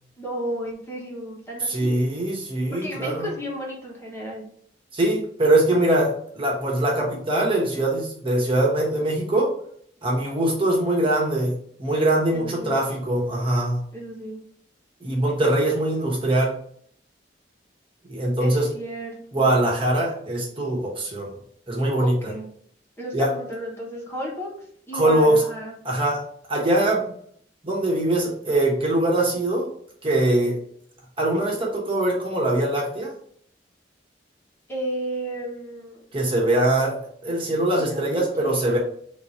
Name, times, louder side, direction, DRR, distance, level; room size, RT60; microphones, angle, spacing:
voice 1, 0.2-2.0 2.7-4.4 12.3-12.8 13.9-14.4 18.4-19.6 22.0-22.5 23.0-24.5 24.9-25.7 34.7-36.0 37.8-38.0 38.4-38.8, equal, 15° left, -4 dB, 1.0 m, -33 dB
voice 2, 1.6-3.3 4.9-9.5 10.0-13.8 15.0-16.5 18.1-18.7 19.3-21.3 21.7-22.3 23.1-23.3 24.9-25.4 25.8-26.2 26.5-27.1 27.6-29.7 30.0-30.6 31.2-33.1 36.1-38.8, right 1 dB, 30° right, -3 dB, 1.1 m, -22 dB
3.8 x 2.6 x 4.2 m, 0.64 s
head